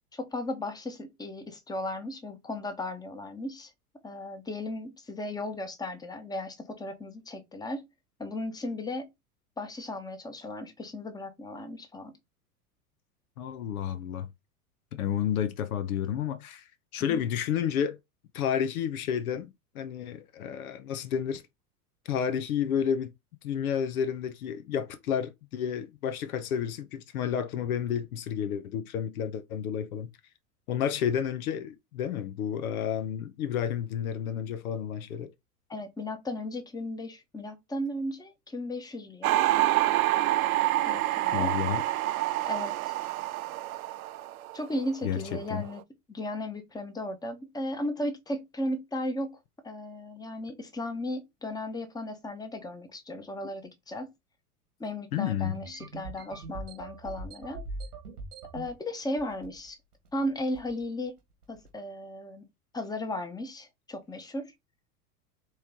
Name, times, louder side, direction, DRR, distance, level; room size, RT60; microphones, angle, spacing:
voice 1, 0.1-3.7 4.0-7.8 8.2-9.1 9.6-12.1 17.1-17.2 35.7-39.5 40.8-41.5 42.5-42.7 44.5-45.8 46.1-49.4 49.6-54.1 54.8-57.6 58.5-59.8 60.1-61.1 61.5-62.5 62.7-64.5, left 1 dB, 10° left, 1.0 m, -35 dB
voice 2, 13.4-14.3 14.9-18.0 18.3-21.4 22.0-23.1 23.4-30.1 30.7-35.3 41.3-41.8 45.0-45.6 53.4-53.5 55.1-55.6, left 8 dB, 70° left, 0.7 m, -31 dB
sound 1, 39.2-45.1 45.3-45.8, right 16 dB, 65° right, 0.5 m, -27 dB
sound 2, 55.4-58.7 59.2-59.7 59.9-60.2 60.5-60.8 61.4-61.7, right 3 dB, 85° right, 1.8 m, -41 dB
4.3 x 3.1 x 3.6 m
hypercardioid pair, 90°, 46 cm